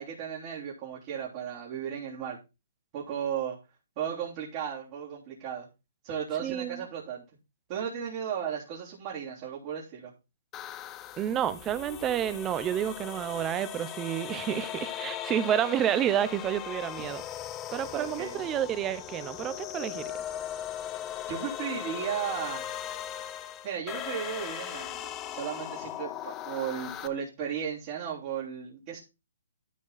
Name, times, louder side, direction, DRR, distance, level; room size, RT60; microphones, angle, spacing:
voice 1, 0.0-2.4 2.9-3.6 4.0-5.7 6.0-7.2 7.7-10.1 17.9-18.5 21.3-22.7 23.6-29.0, right 8 dB, 35° right, 3.6 m, -35 dB
voice 2, 6.4-6.8 11.2-17.2 17.7-20.0, right 10 dB, 20° right, 0.9 m, -30 dB
sound 1, 10.5-27.1, left 11 dB, 20° left, 0.8 m, -39 dB
13.5 x 4.9 x 4.1 m
hypercardioid pair, 140°, 0 cm